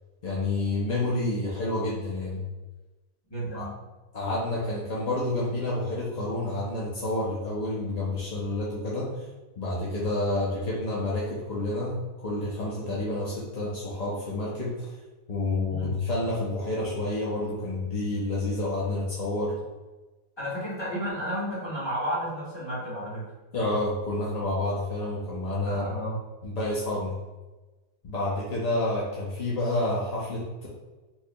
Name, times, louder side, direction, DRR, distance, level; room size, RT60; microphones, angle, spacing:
voice 1, 0.2-2.4 3.5-3.7 4.1-9.2 9.6-14.7 15.3-19.5 23.5-25.9 26.4-27.2 28.0-30.7, left 2 dB, 50° left, -6 dB, 0.4 m, -29 dB
voice 2, 3.3-3.7 15.7-16.0 20.4-23.2 25.7-26.2, equal, 20° left, -9 dB, 1.4 m, -32 dB
4.4 x 2.7 x 2.3 m, 1.2 s
omnidirectional pair, 1.5 m